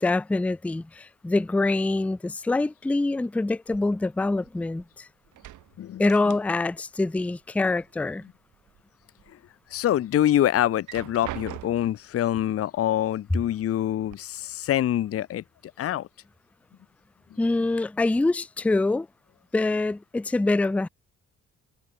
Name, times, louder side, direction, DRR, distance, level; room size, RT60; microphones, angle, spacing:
voice 1, 0.0-5.1 6.0-8.3 17.4-19.1 19.5-20.9, left 2 dB, 5° left, 0.4 m, -25 dB
sound 1, 3.7-4.9 5.2-6.8 7.1-8.1 8.5-9.3 9.8-9.9 10.7-12.1 13.0-13.1 13.5-14.1, right 14 dB, 80° right, 1.8 m, -43 dB
voice 2, 9.7-15.4 15.8-16.1, left 12 dB, 50° left, 0.6 m, -25 dB
cardioid pair, 90°, 30 cm